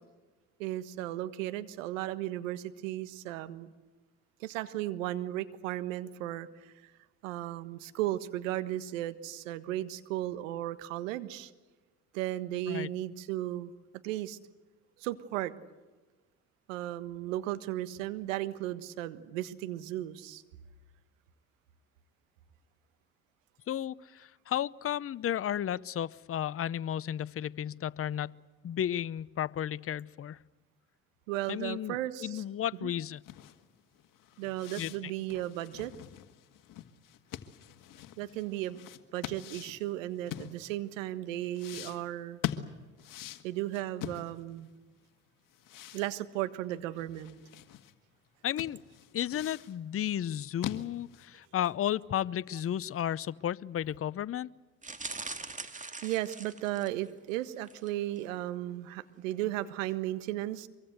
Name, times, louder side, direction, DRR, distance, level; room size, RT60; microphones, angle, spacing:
voice 1, 0.6-3.7 4.4-6.9 7.2-11.5 12.1-13.7 14.0-14.4 15.0-15.6 16.7-20.4 31.3-32.4 32.8-32.9 34.4-35.9 38.2-38.8 39.1-42.4 43.4-44.7 45.9-47.4 55.7-60.7, right 14 dB, 80° right, 13 dB, 1.5 m, -35 dB
voice 2, 23.7-28.4 28.6-30.4 31.5-33.2 34.8-35.1 48.4-48.8 49.1-54.5, left 10 dB, 35° left, 19 dB, 0.8 m, -33 dB
sound 1, 33.2-41.0 41.5-44.7 45.0-45.1 45.5-47.9 48.3-48.4 48.6-49.8 50.2-51.4, left 12 dB, 55° left, 1.8 m, -43 dB
sound 2, 54.8-57.1 57.6-57.9 58.2-58.3, right 3 dB, 20° right, 2.2 m, -42 dB
24.0 x 24.0 x 8.1 m, 1.2 s
hypercardioid pair, 65°, 38 cm